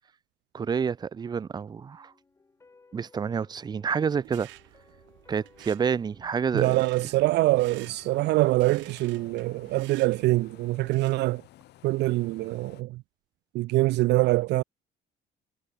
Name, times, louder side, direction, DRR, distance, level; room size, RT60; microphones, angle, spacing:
voice 1, 0.5-2.1 2.9-4.5 5.3-6.7, right 6 dB, 20° right, 0.9 m, -28 dB
sound 1, 1.8-10.8 11.1-11.2, left 3 dB, 15° left, 6.5 m, -61 dB
sound 2, 4.2-11.3, right 19 dB, 80° right, 3.0 m, -52 dB
voice 2, 6.5-11.4 11.8-13.0 13.5-14.6, right 19 dB, 65° right, 0.5 m, -24 dB
sound 3, 7.4-12.8, left 15 dB, 60° left, 4.9 m, -54 dB
cardioid pair, 170°, 19 cm